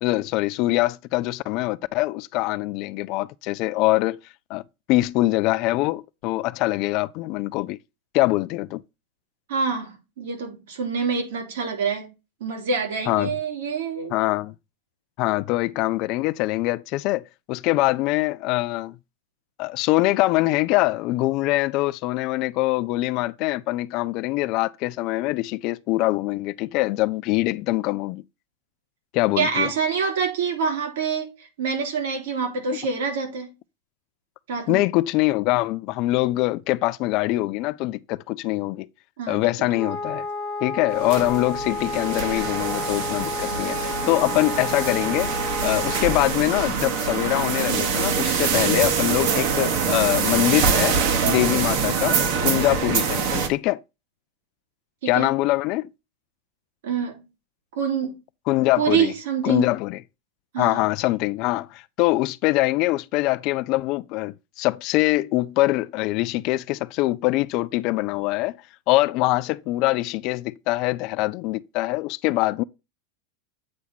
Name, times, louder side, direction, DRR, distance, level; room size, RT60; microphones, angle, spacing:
voice 1, 0.0-4.2 4.5-4.6 4.9-7.8 8.1-8.8 13.1-13.3 14.1-14.5 15.2-19.0 19.6-28.2 29.1-29.7 34.7-38.9 39.3-40.3 40.6-45.3 45.6-51.0 51.3-53.8 55.1-55.9 58.5-59.1 59.4-60.0 60.6-68.6 68.9-72.6, left 19 dB, 35° left, 0.3 m, -23 dB
voice 2, 9.5-12.1 12.4-14.2 29.4-33.5 34.5-34.8 39.2-39.7 55.0-55.3 56.8-57.2 57.7-58.2 58.8-59.7 60.5-60.8, right 6 dB, 75° right, 3.2 m, -26 dB
Wind instrument woodwind instrument, 39.7-46.4, left 3 dB, 5° left, 0.7 m, -31 dB
sound 1, 40.9-53.5, right 6 dB, 45° right, 1.2 m, -24 dB
8.4 x 4.5 x 4.0 m
supercardioid pair, 175°, 0 cm